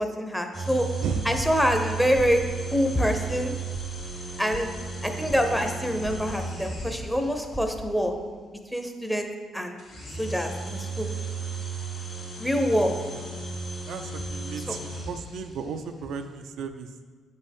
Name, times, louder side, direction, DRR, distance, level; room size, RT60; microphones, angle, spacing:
voice 1, 0.0-0.9 1.2-2.4 2.7-3.5 4.4-4.7 5.0-8.1 8.7-9.8 10.2-11.1 12.4-12.9 14.7-14.8, equal, 5° left, 5 dB, 0.7 m, -25 dB
sound 1, 0.5-7.5 9.8-15.6, right 4 dB, 80° left, 2.1 m, -35 dB
sound 2, 1.4-1.9 2.2-2.7 2.9-3.1 3.4-3.9 4.1-4.6 4.9-5.4 5.7-6.2 6.4-6.9 7.2-7.7, right 1 dB, 25° left, 1.0 m, -39 dB
voice 2, 13.9-17.0, right 6 dB, 80° right, 7 dB, 0.4 m, -35 dB
7.6 x 5.3 x 3.6 m, 1.5 s
cardioid pair, 90°, 0 cm